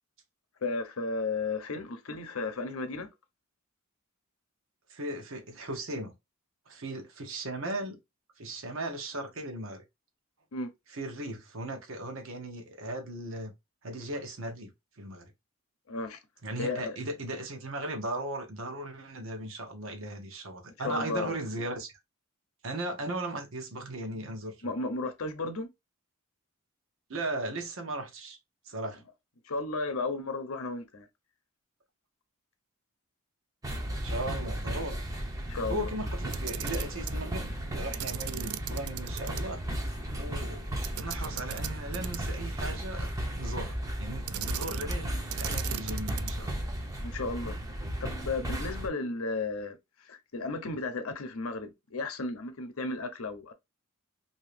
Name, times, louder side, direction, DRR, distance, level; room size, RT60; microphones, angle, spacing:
voice 1, 0.6-3.1 10.5-10.7 15.9-16.2 16.6-17.0 20.8-21.4 24.6-25.7 29.4-31.1 35.5-35.9 47.0-47.6 48.0-53.5, left 3 dB, 70° left, 0.8 m, -34 dB
voice 2, 4.9-6.1 6.7-8.0 8.4-9.8 10.9-13.5 13.8-14.7 15.0-15.3 16.4-21.9 22.6-24.7 27.1-28.4 28.7-29.0 34.0-35.0 35.7-39.6 40.1-46.6, right 1 dB, 65° right, 0.9 m, -37 dB
sound 1, 33.6-48.9, right 1 dB, 15° right, 0.6 m, -35 dB
Camera, 36.3-37.2 37.9-39.4 39.7-39.8 40.8-42.4 44.3-45.0 45.3-46.5, right 11 dB, 90° right, 0.3 m, -38 dB
2.8 x 2.7 x 3.2 m
head